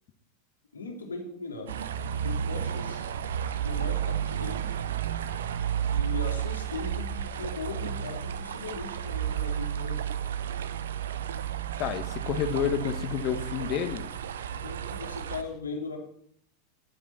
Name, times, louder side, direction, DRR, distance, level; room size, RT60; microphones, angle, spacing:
voice 1, 0.7-1.8 2.2-3.1 3.6-4.7 5.9-10.1 14.5-16.0, left 4 dB, 80° left, 1 dB, 2.7 m, -38 dB
sound 1, 1.7-15.4, right 9 dB, 70° right, 0.7 m, -32 dB
voice 2, 11.8-14.1, left 9 dB, 45° left, 9 dB, 1.3 m, -29 dB
19.5 x 7.5 x 4.3 m, 0.64 s
figure-of-eight pair, 90°, 0 cm